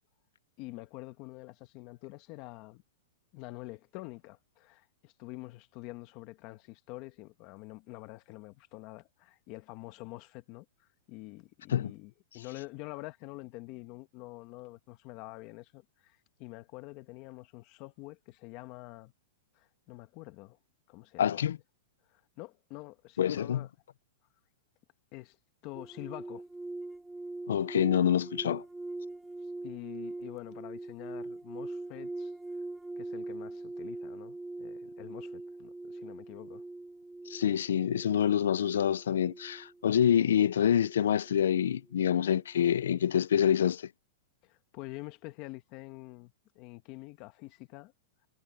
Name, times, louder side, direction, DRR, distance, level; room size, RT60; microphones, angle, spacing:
voice 1, 0.6-2.8 3.3-19.1 19.5-20.6 20.9-21.5 22.1-23.7 25.1-25.4 25.6-26.5 29.6-32.3 33.0-36.6 44.4-47.9, left 20 dB, 35° left, 1.5 m, -46 dB
voice 2, 21.2-21.6 23.2-23.7 27.5-28.6 37.3-43.9, left 9 dB, 85° left, 0.4 m, -26 dB
sound 1, 25.7-43.1 43.3-43.7, right 2 dB, 5° right, 0.3 m, -43 dB
supercardioid pair, 165°, 0 cm